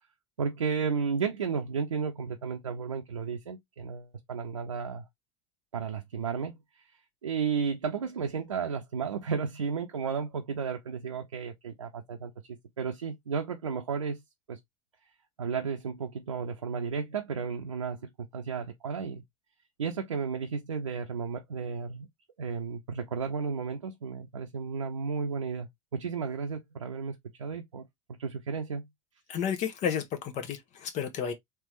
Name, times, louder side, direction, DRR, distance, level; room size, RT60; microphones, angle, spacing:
voice 1, 0.4-5.1 5.7-6.9 7.2-12.3 12.8-14.2 14.5-14.6 15.4-19.2 19.8-22.1 22.4-27.8 28.2-28.8, right 5 dB, 85° right, 0.6 m, -33 dB
voice 2, 29.3-31.3, left 8 dB, 45° left, 0.9 m, -31 dB
3.4 x 3.3 x 3.0 m
hypercardioid pair, 80°, 16 cm